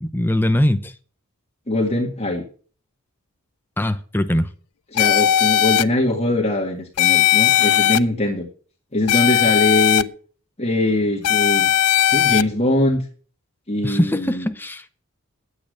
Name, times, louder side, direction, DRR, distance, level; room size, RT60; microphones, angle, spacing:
voice 1, 0.0-0.9 3.8-4.5 13.8-14.9, left 1 dB, 10° left, 0.7 m, -21 dB
voice 2, 1.7-2.4 4.9-8.5 8.9-10.0 10.6-11.7 12.1-13.0 13.7-14.5, left 1 dB, 30° left, 1.7 m, -22 dB
sound 1, 5.0-5.8 7.0-8.0 9.1-10.0 11.2-12.4, left 11 dB, 90° left, 0.5 m, -17 dB
11.0 x 8.6 x 6.4 m
head